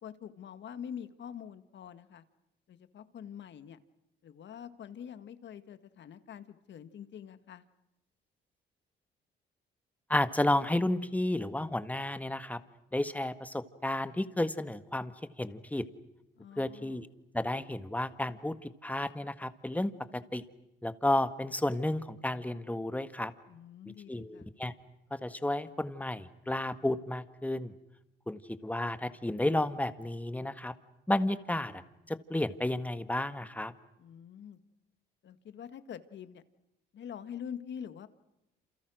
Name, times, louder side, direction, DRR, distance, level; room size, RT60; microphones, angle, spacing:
voice 1, 0.0-2.2 2.7-3.8 4.2-7.7 16.4-17.0 23.5-24.5 34.0-34.6 35.2-36.4 36.9-38.1, left 8 dB, 65° left, 11 dB, 1.9 m, -45 dB
voice 2, 10.1-12.6 12.9-15.1 15.4-15.9 16.6-17.1 17.3-20.4 20.8-23.3 24.1-24.7 25.1-27.7 28.3-30.7 31.1-33.7, left 1 dB, 5° left, 11 dB, 1.8 m, -32 dB
28.5 x 28.0 x 6.4 m, 0.89 s
cardioid pair, 90°, 20 cm